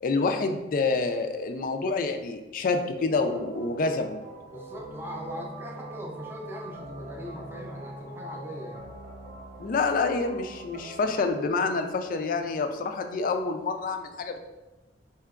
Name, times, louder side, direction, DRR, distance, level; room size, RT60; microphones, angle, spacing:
voice 1, 0.0-4.2 9.6-14.4, left 3 dB, 50° left, 6 dB, 0.3 m, -27 dB
sound 1, 3.1-11.3, right 1 dB, 50° right, 0.7 m, -43 dB
voice 2, 4.5-8.9, equal, 10° right, -1 dB, 0.5 m, -40 dB
4.4 x 2.9 x 2.4 m, 1.1 s
head